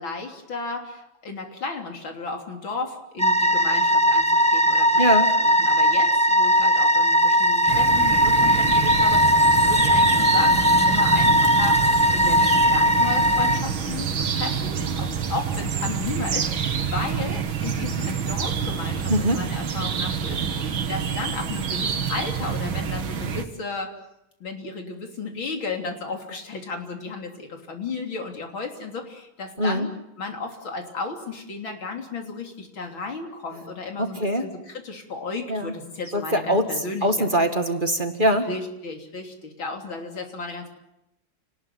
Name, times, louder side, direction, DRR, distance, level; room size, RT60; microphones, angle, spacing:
voice 1, 0.0-5.0 5.4-23.9 24.4-29.9 30.2-37.3 38.4-40.7, left 3 dB, 85° left, 3 dB, 4.1 m, -34 dB
sound 1, 3.2-13.6, equal, 5° left, 1.0 m, -19 dB
voice 2, 5.0-5.3 19.1-19.4 29.6-29.9 34.0-34.5 35.5-35.7 36.1-36.7 37.0-38.5, equal, 25° right, 6 dB, 2.2 m, -22 dB
sound 2, 7.7-23.4, right 7 dB, 90° right, 2.5 m, -27 dB
29.0 x 19.5 x 9.5 m, 0.85 s
omnidirectional pair, 2.1 m